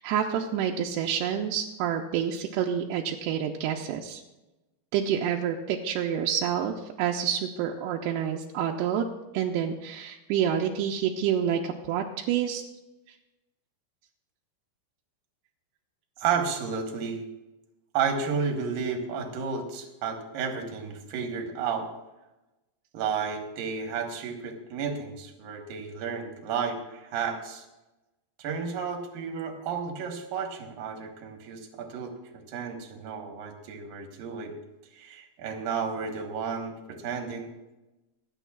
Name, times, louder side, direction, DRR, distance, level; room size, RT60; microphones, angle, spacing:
voice 1, 0.0-4.2 4.9-9.1 9.3-12.6, right 9 dB, 85° right, 0 dB, 2.7 m, -28 dB
voice 2, 16.2-17.2 17.9-21.9 22.9-27.7 28.4-34.6 34.9-37.5, right 6 dB, 65° right, 4 dB, 2.7 m, -32 dB
27.0 x 9.1 x 2.4 m, 1.0 s
omnidirectional pair, 4.8 m